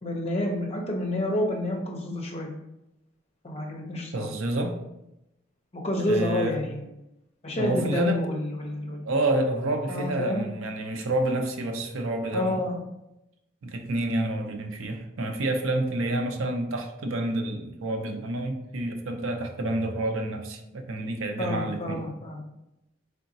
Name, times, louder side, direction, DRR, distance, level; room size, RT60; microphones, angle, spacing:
voice 1, 0.0-2.5 3.4-4.3 5.7-6.8 7.4-9.1 9.9-10.5 12.3-12.8 21.4-22.4, left 1 dB, 30° left, 0 dB, 0.6 m, -29 dB
voice 2, 4.1-4.8 6.0-6.5 7.6-8.2 9.0-12.6 13.6-22.0, right 2 dB, 90° right, 4 dB, 0.5 m, -29 dB
3.8 x 3.5 x 2.6 m, 0.89 s
head